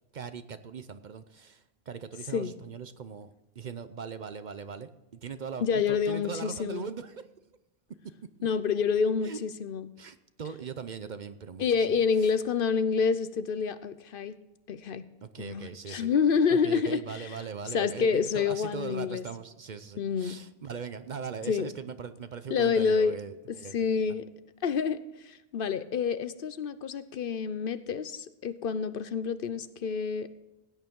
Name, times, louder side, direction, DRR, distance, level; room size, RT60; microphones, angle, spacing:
voice 1, 0.1-7.3 8.4-8.5 9.2-9.4 10.0-11.9 12.2-12.3 15.2-16.1 16.5-23.7 24.1-24.2, right 6 dB, 50° right, 12 dB, 0.7 m, -40 dB
voice 2, 5.6-6.9 8.4-9.9 11.6-14.4 14.7-15.1 15.4-17.3 17.7-19.2 20.0-20.4 21.5-21.7 22.5-23.2 23.5-24.3 24.6-30.3, left 6 dB, 65° left, 13 dB, 0.8 m, -28 dB
16.0 x 9.3 x 3.7 m, 0.98 s
omnidirectional pair, 1.1 m